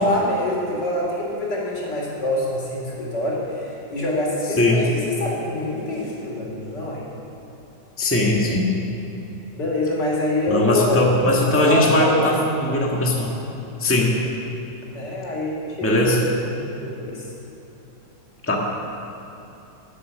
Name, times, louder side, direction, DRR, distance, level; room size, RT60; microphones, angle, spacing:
voice 1, 0.0-7.0 9.5-11.0 11.6-12.4 14.9-16.5 16.8-17.3, left 1 dB, 65° left, -4 dB, 3.9 m, -25 dB
voice 2, 8.0-8.7 10.5-13.3 13.8-14.2 15.8-16.2 18.4-18.6, left 1 dB, 5° left, -2 dB, 1.6 m, -19 dB
19.0 x 8.4 x 6.7 m, 2.9 s
omnidirectional pair, 2.0 m